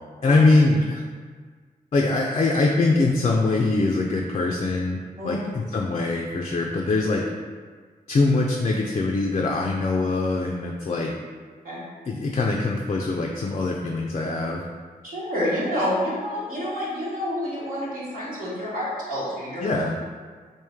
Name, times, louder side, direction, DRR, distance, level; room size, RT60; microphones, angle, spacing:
voice 1, 0.2-1.0 1.9-5.0 5.2-7.2 8.1-11.1 12.1-14.6 19.6-20.0, left 3 dB, 40° left, 0 dB, 0.4 m, -22 dB
voice 2, 15.0-19.7, equal, 60° right, -8 dB, 1.2 m, -28 dB
3.1 x 2.6 x 3.5 m, 1.6 s
cardioid pair, 55°, 16 cm